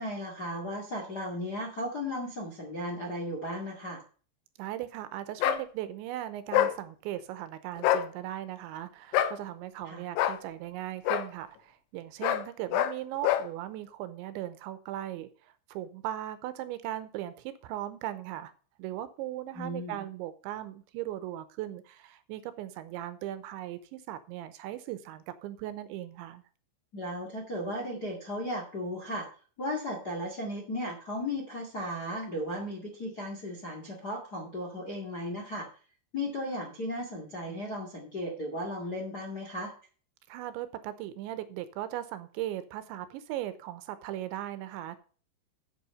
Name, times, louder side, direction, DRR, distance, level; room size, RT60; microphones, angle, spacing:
voice 1, 0.0-4.0 9.8-10.0 19.5-20.0 26.9-29.3 29.6-35.7 36.1-39.7, left 1 dB, 45° left, 0 dB, 1.3 m, -35 dB
voice 2, 4.6-18.5 18.8-26.4 40.3-45.0, right 13 dB, 85° right, 12 dB, 3.1 m, -38 dB
sound 1, 5.4-5.6 6.5-6.8 7.8-8.1 9.1-9.4 10.2-10.4 11.1-11.3 12.2-12.5 12.7-13.0 13.2-13.5, left 12 dB, 90° left, 3.2 m, -25 dB
8.5 x 7.8 x 5.4 m, 0.39 s
omnidirectional pair, 5.4 m